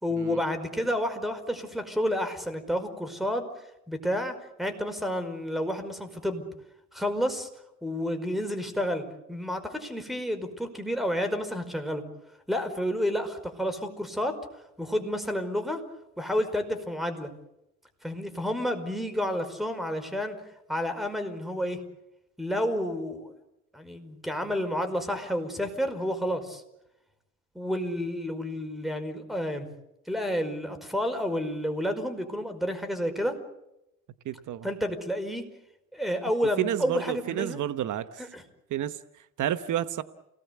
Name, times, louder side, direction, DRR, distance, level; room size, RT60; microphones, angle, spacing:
voice 1, 0.0-3.5 3.9-6.4 6.9-7.5 7.8-12.0 12.5-14.4 14.8-15.8 16.2-17.3 18.0-20.4 20.7-21.8 22.4-23.3 23.7-26.6 27.6-29.7 30.1-33.4 34.6-35.5 35.9-37.6 38.2-38.4, equal, ahead, 5.1 m, -30 dB
voice 2, 34.2-34.7 36.6-38.2 38.7-39.0 39.4-40.0, right 11 dB, 75° right, 1.1 m, -30 dB
29.5 x 19.5 x 8.3 m
cardioid pair, 105°, 31 cm